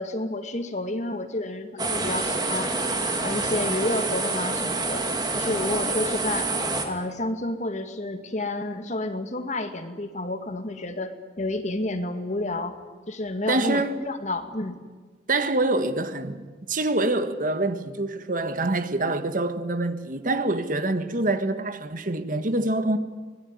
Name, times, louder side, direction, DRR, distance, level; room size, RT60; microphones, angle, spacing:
voice 1, 0.0-2.7 3.2-5.1 5.4-6.5 6.8-12.8 13.1-14.8, left 2 dB, 40° left, 2.2 m, -30 dB
sound 1, 1.8-6.9, right 3 dB, 25° right, 2.9 m, -27 dB
voice 2, 13.5-14.0 15.3-23.0, right 2 dB, 50° right, 1.5 m, -25 dB
24.5 x 21.0 x 9.7 m
head